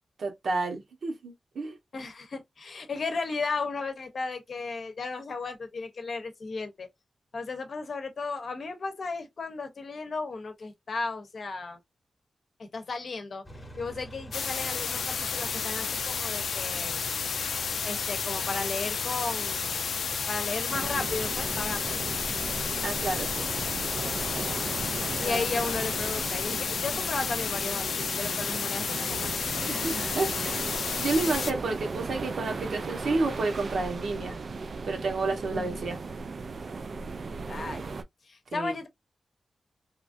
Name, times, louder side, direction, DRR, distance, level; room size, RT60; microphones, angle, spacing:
voice 1, 0.2-1.8 22.8-23.5 25.2-25.5 29.7-30.6 31.0-34.4 34.8-36.0 38.5-38.7, right 3 dB, 75° right, 1.0 m, -30 dB
voice 2, 1.9-6.9 7.3-11.8 12.6-13.4 13.8-17.0 17.8-19.9 20.3-22.1 25.2-29.7 35.5-35.9 37.5-38.0 38.3-38.9, left 3 dB, 55° left, 0.7 m, -35 dB
sound 1, 13.4-26.2, right 1 dB, 10° left, 0.9 m, -44 dB
sound 2, 14.3-31.5, left 6 dB, 80° left, 0.4 m, -31 dB
sound 3, 20.7-38.0, right 4 dB, 50° right, 0.3 m, -37 dB
3.0 x 2.4 x 2.5 m
wide cardioid pair, 160°, 0 cm